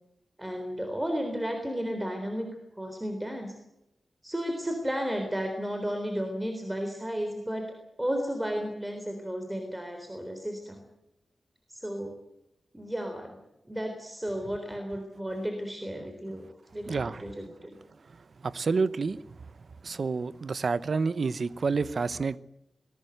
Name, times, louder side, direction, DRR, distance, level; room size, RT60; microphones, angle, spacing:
voice 1, 0.4-2.5 2.8-3.6 4.2-10.8 11.7-12.1 12.7-13.4 13.7-16.5 16.7-17.8, equal, 10° right, 4 dB, 3.8 m, -33 dB
voice 2, 16.9-17.2 18.0-19.5 19.8-22.4, right 4 dB, 60° right, 16 dB, 0.9 m, -29 dB
20.5 x 19.5 x 8.0 m, 0.86 s
wide cardioid pair, 105°, 0 cm